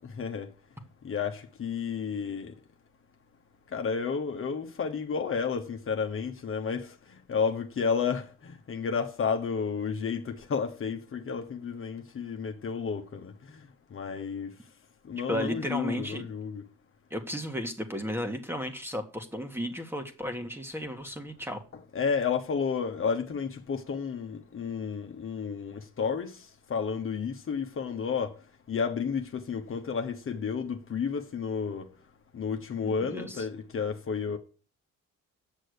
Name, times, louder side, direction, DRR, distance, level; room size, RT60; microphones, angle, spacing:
voice 1, 0.2-0.5 1.0-2.5 3.7-6.9 7.3-13.3 13.9-14.5 15.1-16.6 21.9-26.3 26.7-28.3 28.7-31.9 32.3-34.4, left 6 dB, 45° left, 1.3 m, -31 dB
voice 2, 15.3-16.3 17.1-21.6 32.8-33.4, equal, 10° right, 1.7 m, -34 dB
8.3 x 6.3 x 6.7 m
cardioid pair, 90°, 30 cm